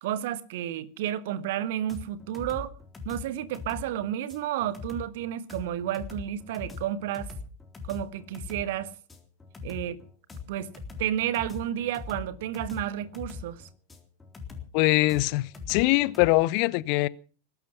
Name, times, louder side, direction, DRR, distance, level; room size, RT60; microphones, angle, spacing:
voice 1, 0.0-2.7 3.0-7.3 7.8-8.9 9.6-10.0 10.5-10.7 11.0-13.7, right 11 dB, 50° right, 1.3 m, -31 dB
sound 1, 1.9-16.3, left 5 dB, 10° left, 3.8 m, -41 dB
voice 2, 14.7-17.1, left 20 dB, 45° left, 0.8 m, -23 dB
20.5 x 12.0 x 5.7 m
figure-of-eight pair, 90°, 0 cm